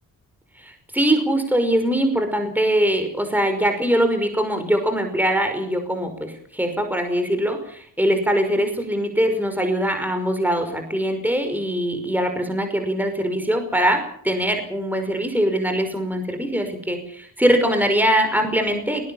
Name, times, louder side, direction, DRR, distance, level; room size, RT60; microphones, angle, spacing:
voice 1, 0.6-19.1, equal, 5° right, 6 dB, 5.6 m, -22 dB
20.0 x 19.5 x 7.4 m, 0.63 s
cardioid pair, 65°, 39 cm